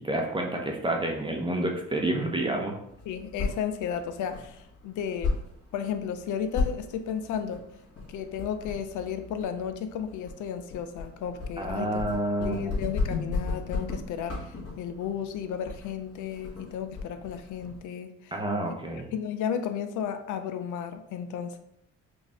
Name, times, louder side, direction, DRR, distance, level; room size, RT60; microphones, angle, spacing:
voice 1, 0.0-2.7 11.6-12.7 18.3-19.1, right 1 dB, 15° right, 1 dB, 0.7 m, -29 dB
sound 1, 2.9-17.8, left 3 dB, 50° left, 1.7 m, -36 dB
voice 2, 3.1-5.3 5.7-7.6 8.1-12.0 12.4-18.3 19.1-21.6, left 8 dB, 80° left, 8 dB, 0.5 m, -33 dB
5.0 x 2.6 x 3.4 m, 0.74 s
cardioid pair, 90°, 30 cm